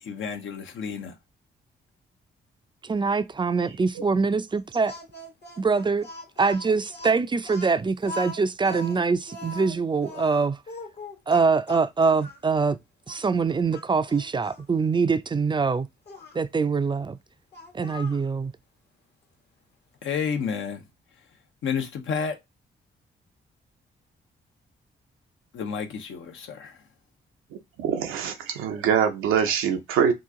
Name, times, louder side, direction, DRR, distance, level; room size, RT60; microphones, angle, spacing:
voice 1, 0.0-1.2 20.0-20.8 21.6-22.4 25.5-26.8, left 6 dB, 70° left, 0.7 m, -30 dB
voice 2, 2.8-5.0 5.6-6.1 6.4-10.6 11.3-12.8 13.1-15.9 16.3-17.2 17.7-18.5, right 4 dB, 25° right, 0.4 m, -24 dB
Speech, 4.9-12.4 13.1-13.2 13.7-14.6 16.1-16.4 17.5-18.3, left 2 dB, 55° left, 1.0 m, -41 dB
voice 3, 27.5-30.1, right 7 dB, 85° right, 0.6 m, -24 dB
2.9 x 2.4 x 3.6 m
supercardioid pair, 50°, 21 cm